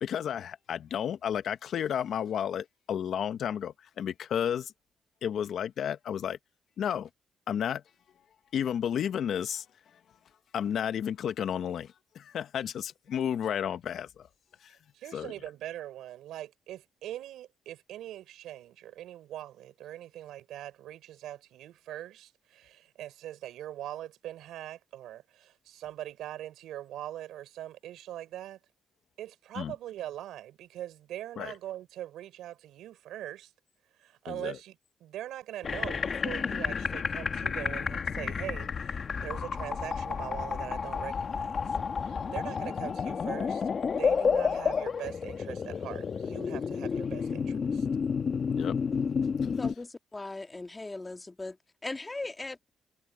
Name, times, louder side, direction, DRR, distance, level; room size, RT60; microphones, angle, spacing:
voice 1, 0.0-4.7 5.2-6.4 6.8-7.1 7.5-7.8 8.5-9.6 10.5-14.3 14.6-14.8 15.1-15.3 29.5-29.7 31.4-31.5 34.3-34.6 48.6-48.8, left 9 dB, 65° left, 1.4 m, -32 dB
voice 2, 14.9-28.6 29.2-33.5 34.0-34.7 35.0-41.7 42.0-47.9, right 12 dB, 85° right, 4.9 m, -42 dB
sound 1, 35.6-49.7, left 6 dB, 45° left, 1.5 m, -31 dB
voice 3, 49.6-52.6, left 2 dB, 20° left, 2.3 m, -39 dB
cardioid pair, 90°, 0 cm